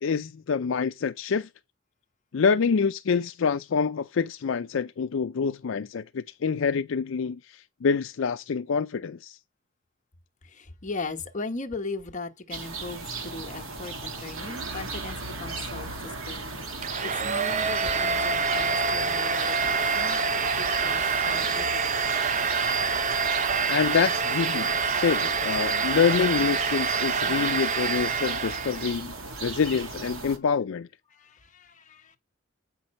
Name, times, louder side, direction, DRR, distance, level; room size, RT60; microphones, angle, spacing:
voice 1, 0.0-1.5 2.3-9.4 23.7-29.1 29.4-30.9, left 6 dB, 70° left, 0.4 m, -26 dB
voice 2, 10.4-22.0 29.2-29.6 31.1-32.2, left 3 dB, 40° left, 1.1 m, -38 dB
sound 1, 12.5-30.4, right 3 dB, 80° right, 2.0 m, -37 dB
Domestic sounds home sounds, 16.8-28.9, right 5 dB, 35° right, 0.6 m, -26 dB
8.6 x 5.8 x 5.2 m
head